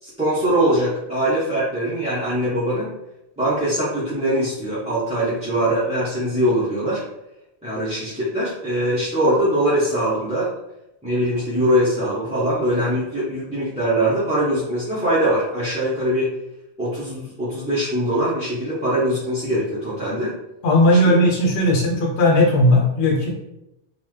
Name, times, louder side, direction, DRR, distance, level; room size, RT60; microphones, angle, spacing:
voice 1, 0.0-2.9 3.4-7.0 7.6-10.5 11.0-16.3 16.8-20.3 21.1-21.2, right 1 dB, 5° right, -11 dB, 0.7 m, -22 dB
voice 2, 20.6-23.3, left 1 dB, 65° left, -1 dB, 0.9 m, -16 dB
3.8 x 2.3 x 3.1 m, 0.87 s
omnidirectional pair, 1.2 m